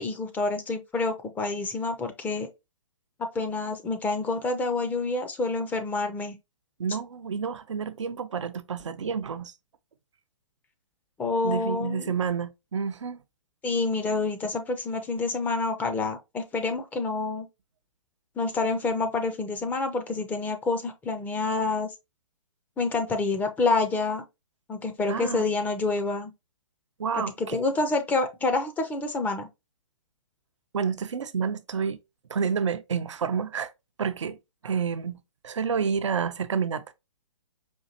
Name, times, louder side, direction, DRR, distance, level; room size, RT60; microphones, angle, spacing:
voice 1, 0.0-2.5 3.2-6.4 11.2-12.1 13.6-17.5 18.4-21.9 22.8-24.2 24.7-26.3 27.4-29.5, left 3 dB, 10° left, 0.5 m, -28 dB
voice 2, 6.8-9.5 11.4-13.2 25.1-25.5 27.0-27.6 30.7-32.0 32.3-33.7 34.0-34.4 34.6-35.2 35.4-36.9, right 6 dB, 65° right, 0.5 m, -29 dB
5.1 x 2.5 x 2.7 m
figure-of-eight pair, 125°, 16 cm